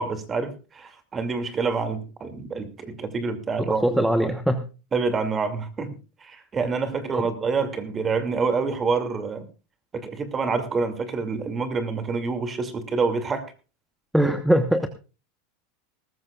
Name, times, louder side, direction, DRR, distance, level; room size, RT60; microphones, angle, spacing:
voice 1, 0.0-4.3 4.9-9.5 9.9-13.5, right 4 dB, 25° right, 8 dB, 2.5 m, -27 dB
voice 2, 3.6-4.6 7.1-7.3 14.1-14.9, right 1 dB, 5° right, 7 dB, 1.1 m, -22 dB
20.0 x 14.0 x 2.4 m, 0.33 s
supercardioid pair, 130°, 0 cm